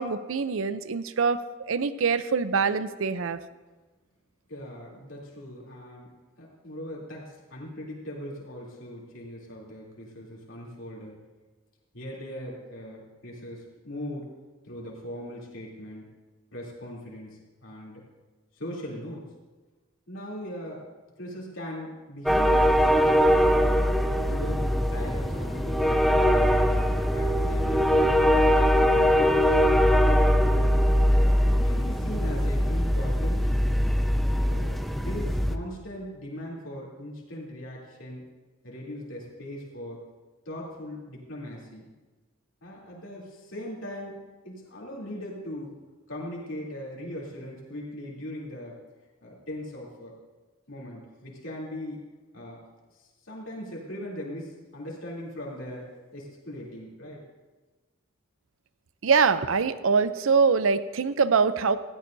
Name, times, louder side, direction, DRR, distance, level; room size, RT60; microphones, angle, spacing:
voice 1, 0.0-1.4 1.7-3.4 59.0-61.8, right 5 dB, 75° right, 13 dB, 0.6 m, -24 dB
voice 2, 4.5-6.1 6.4-11.2 11.9-14.3 14.6-16.1 16.5-18.0 18.5-19.3 20.1-20.9 21.2-23.5 24.3-26.9 27.1-28.1 28.8-30.7 31.1-33.7 34.5-38.3 38.6-40.0 40.4-41.8 42.6-45.8 46.1-48.8 49.2-50.2 50.7-52.0 52.3-52.7 52.9-57.2, equal, 70° left, -4 dB, 3.2 m, -39 dB
sound 1, 22.3-35.6, equal, ahead, 0.5 m, -22 dB
17.5 x 15.0 x 2.7 m, 1.3 s
head